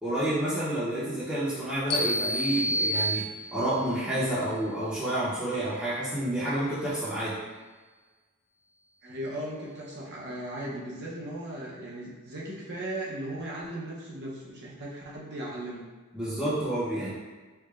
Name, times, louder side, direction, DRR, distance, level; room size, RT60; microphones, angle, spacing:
voice 1, 0.0-7.4 16.1-17.1, right 1 dB, 5° right, -12 dB, 0.7 m, -29 dB
sound 1, 1.9-3.8, equal, 45° left, 0.4 m, -28 dB
voice 2, 9.0-15.8, right 1 dB, 50° right, -5 dB, 0.8 m, -37 dB
4.6 x 2.2 x 2.4 m, 1.3 s
head